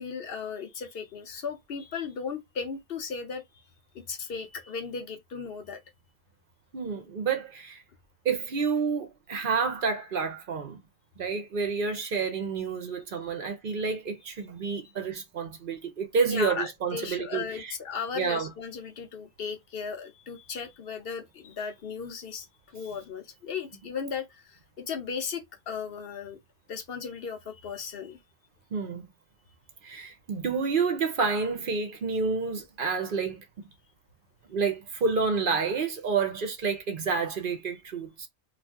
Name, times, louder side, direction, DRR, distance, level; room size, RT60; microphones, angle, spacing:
voice 1, 0.0-3.4 3.9-5.8 16.2-22.5 22.7-24.3 24.8-26.4 26.7-28.2, left 6 dB, 60° left, 0.9 m, -36 dB
voice 2, 6.7-7.8 8.2-10.8 11.2-17.8 18.2-18.5 28.7-29.0 29.8-33.7 34.5-38.3, right 5 dB, 55° right, 0.8 m, -29 dB
2.7 x 2.5 x 3.4 m
omnidirectional pair, 1.1 m